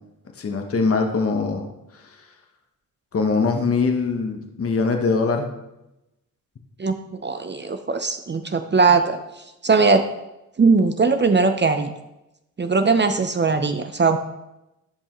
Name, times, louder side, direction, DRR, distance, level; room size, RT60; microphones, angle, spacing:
voice 1, 0.4-1.7 3.1-5.5, left 4 dB, 40° left, 4 dB, 1.1 m, -22 dB
voice 2, 7.2-9.2 9.6-10.0 10.6-11.9 12.6-14.2, right 4 dB, 30° right, 7 dB, 0.7 m, -19 dB
11.5 x 5.4 x 3.1 m, 0.92 s
cardioid pair, 60°, 34 cm